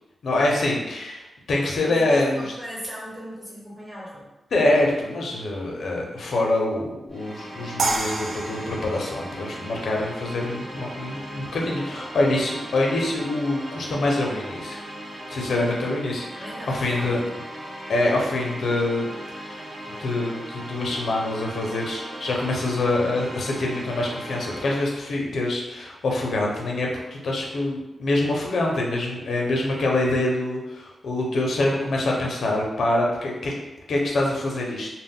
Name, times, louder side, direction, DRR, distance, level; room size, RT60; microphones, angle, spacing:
voice 1, 0.2-2.5 4.5-14.8 15.3-17.2 17.9-19.1 19.4-19.6 20.0-33.5 33.9-34.9, left 2 dB, 75° left, -1 dB, 0.5 m, -25 dB
voice 2, 1.8-4.3 16.4-17.1, equal, 25° right, -6 dB, 1.0 m, -38 dB
sound 1, 7.1-25.0, equal, 65° right, 0.8 m, -38 dB
sound 2, 7.8-10.9, right 3 dB, 85° right, 0.3 m, -30 dB
2.1 x 2.0 x 3.5 m, 0.98 s
wide cardioid pair, 100°, 0 cm